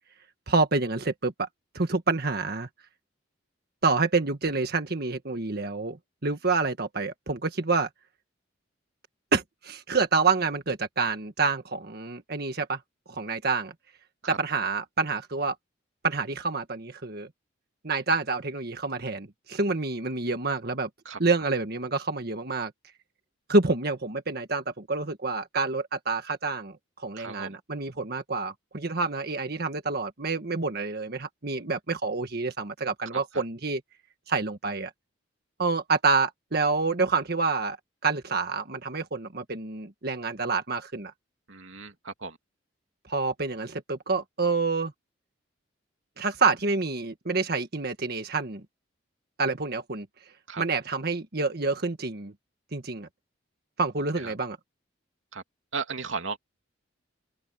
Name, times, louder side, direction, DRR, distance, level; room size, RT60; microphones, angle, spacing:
voice 1, 0.5-1.5 1.7-2.7 3.8-7.9 9.3-12.8 13.1-13.7 14.4-15.5 16.0-17.3 17.8-20.9 21.2-22.7 23.5-26.7 27.0-33.8 34.3-34.9 35.6-37.8 38.0-41.1 43.1-44.9 46.2-48.6 49.4-50.1 50.6-52.3 52.7-53.1 53.8-54.6, right 4 dB, 55° right, 1.6 m, -28 dB
voice 2, 27.2-27.6 33.1-33.4 41.5-42.4 50.5-50.6 54.2-54.3 55.3-55.4 55.7-56.4, right 4 dB, 90° right, 2.6 m, -36 dB
head